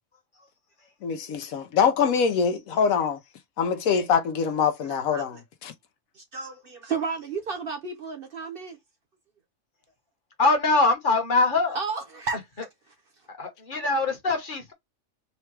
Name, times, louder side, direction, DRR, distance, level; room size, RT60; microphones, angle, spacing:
voice 1, 1.0-3.2 3.6-5.7, left 6 dB, 80° left, 1.2 m, -24 dB
voice 2, 6.1-8.8 11.7-12.4, right 5 dB, 45° right, 0.9 m, -32 dB
voice 3, 10.4-11.8 13.3-14.7, left 3 dB, 40° left, 1.1 m, -23 dB
3.8 x 2.2 x 4.5 m
omnidirectional pair, 1.5 m